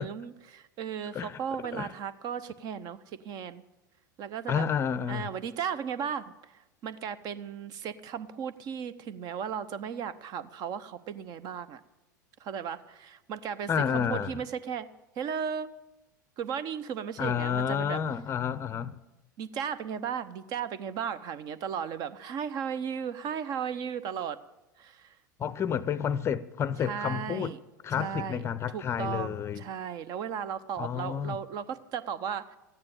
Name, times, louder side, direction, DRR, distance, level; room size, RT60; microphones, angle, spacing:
voice 1, 0.0-3.6 4.2-4.6 5.1-11.8 12.4-14.9 15.2-15.7 16.4-18.0 19.4-24.4 24.8-25.2 26.8-27.6 28.0-28.4 28.7-32.6, right 7 dB, 40° right, 0.8 m, -35 dB
voice 2, 4.5-5.3 13.7-14.3 17.2-19.0 25.4-27.5 27.8-29.6 30.8-31.4, left 8 dB, 25° left, 0.6 m, -30 dB
13.5 x 9.7 x 8.7 m
figure-of-eight pair, 85°, 10 cm